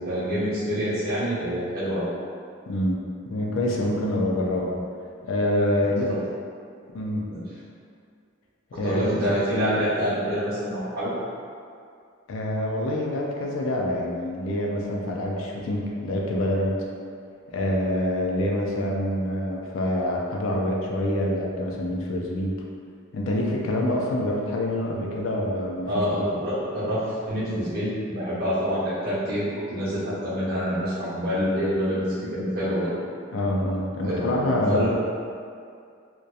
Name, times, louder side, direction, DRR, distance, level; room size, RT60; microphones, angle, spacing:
voice 1, 0.0-2.1 6.1-6.2 7.3-7.4 8.8-11.1 25.9-32.1 32.3-32.9 34.0-35.0, equal, 50° right, -12 dB, 1.0 m, -26 dB
voice 2, 2.7-3.0 3.3-4.8 5.3-6.1 6.9-7.2 8.7-9.0 12.3-16.8 17.5-22.5 23.1-25.9 26.1-26.2 33.3-35.0, left 1 dB, 75° left, -2 dB, 0.4 m, -26 dB
2.7 x 2.2 x 2.3 m, 2.3 s
head